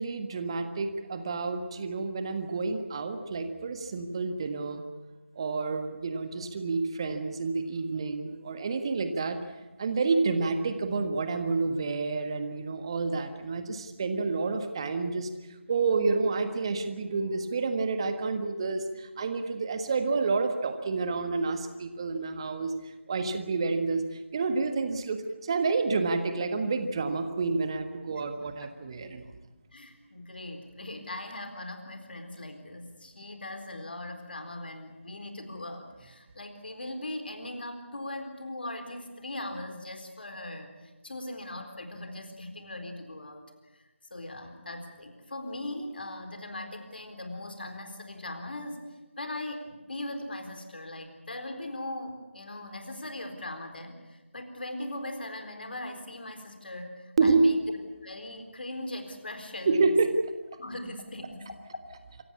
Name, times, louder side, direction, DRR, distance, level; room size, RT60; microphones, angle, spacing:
voice 1, 0.0-4.8 5.3-9.4 9.8-15.3 15.7-29.2 57.2-57.5 59.7-60.1, right 4 dB, 25° right, 8 dB, 1.5 m, -29 dB
voice 2, 28.1-28.7 29.7-48.8 49.2-57.8 58.0-59.9 60.6-62.0, left 1 dB, 50° left, 6 dB, 4.1 m, -40 dB
26.5 x 16.5 x 8.5 m, 1.1 s
figure-of-eight pair, 160°, 7 cm